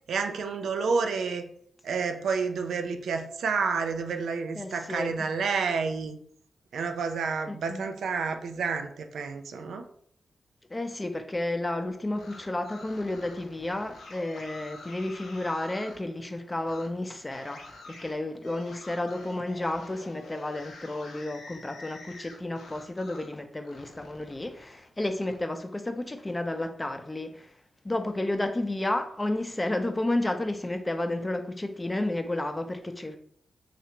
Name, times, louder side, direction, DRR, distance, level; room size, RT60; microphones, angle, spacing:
voice 1, 0.1-1.5 1.8-6.2 6.7-9.9, right 5 dB, 80° right, 0.3 m, -29 dB
voice 2, 4.6-5.3 7.5-7.8 10.7-27.5 27.8-33.2, left 1 dB, 25° left, 0.5 m, -32 dB
sound 1, 12.0-16.0 16.6-16.9 17.3-23.3 23.6-25.4, left 3 dB, 80° left, 0.6 m, -47 dB
3.2 x 2.5 x 2.9 m
supercardioid pair, 40°, 0 cm